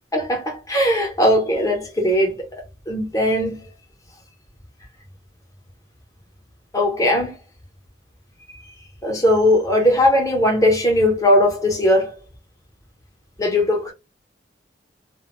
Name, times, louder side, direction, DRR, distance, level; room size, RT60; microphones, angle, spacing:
voice 1, 0.1-2.4 2.9-3.7 6.7-7.3 9.0-12.1 13.4-13.9, left 1 dB, 20° left, 1.0 m, -19 dB
2.4 x 2.1 x 3.0 m
head